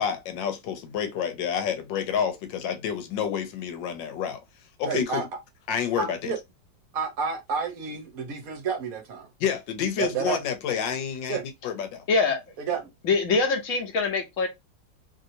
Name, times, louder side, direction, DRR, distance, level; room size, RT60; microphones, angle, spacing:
voice 1, 0.0-4.4 4.8-5.3 5.7-6.3 9.4-11.4 11.6-12.0, left 8 dB, 90° left, 1.4 m, -29 dB
voice 2, 4.9-5.2 6.0-6.4 6.9-9.3 10.0-10.4 11.3-11.4 12.6-12.9, right 5 dB, 60° right, 1.0 m, -30 dB
voice 3, 12.1-12.4 13.0-14.5, left 4 dB, 50° left, 1.1 m, -23 dB
3.1 x 2.7 x 2.6 m
omnidirectional pair, 2.0 m